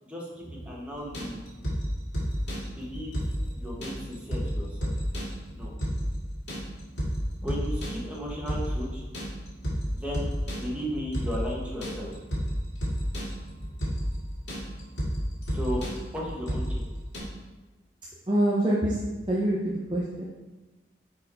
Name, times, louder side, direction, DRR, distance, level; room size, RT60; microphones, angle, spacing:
voice 1, 0.0-1.4 2.6-3.2 3.5-4.9 5.5-5.7 7.4-9.0 9.9-10.3 10.6-12.1 15.5-15.8 16.1-16.8, equal, 5° right, -4 dB, 1.1 m, -35 dB
sound 1, 0.9-17.2, equal, 90° left, 1.9 m, -32 dB
voice 2, 18.3-19.0 19.3-20.2, right 1 dB, 25° right, -5 dB, 0.6 m, -25 dB
5.0 x 4.5 x 4.4 m, 1.2 s
head